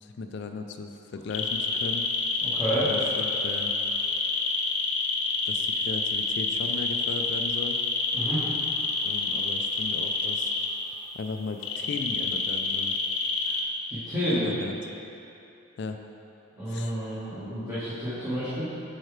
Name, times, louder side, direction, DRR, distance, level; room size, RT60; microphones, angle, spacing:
voice 1, 0.0-2.0 2.7-3.7 5.5-7.8 9.0-10.5 11.1-12.9 14.3-14.9 15.8-16.0 16.7-17.0, left 3 dB, 50° left, 5 dB, 0.3 m, -36 dB
sound 1, 1.3-10.7 11.6-13.6, left 4 dB, 75° left, 0.7 m, -28 dB
voice 2, 2.4-2.9 8.1-8.4 13.9-14.4 16.5-18.7, equal, 10° right, -15 dB, 1.5 m, -30 dB
8.9 x 4.7 x 3.3 m, 2.8 s
head